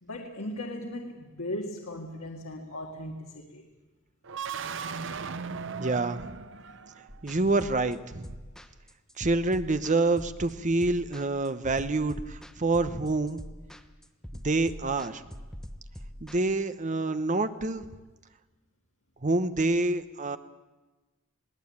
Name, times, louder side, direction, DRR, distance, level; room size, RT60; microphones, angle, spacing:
voice 1, 0.0-3.7, left 1 dB, 90° left, 0 dB, 1.9 m, -37 dB
sound 1, 4.2-7.2, right 5 dB, 65° right, 0.7 m, -37 dB
voice 2, 5.8-6.3 7.2-8.3 9.2-13.4 14.4-15.2 16.2-17.8 19.2-20.4, right 2 dB, 35° right, 11 dB, 1.0 m, -27 dB
sound 2, 7.1-16.4, equal, ahead, 1.0 m, -44 dB
21.0 x 17.5 x 8.7 m, 1.2 s
head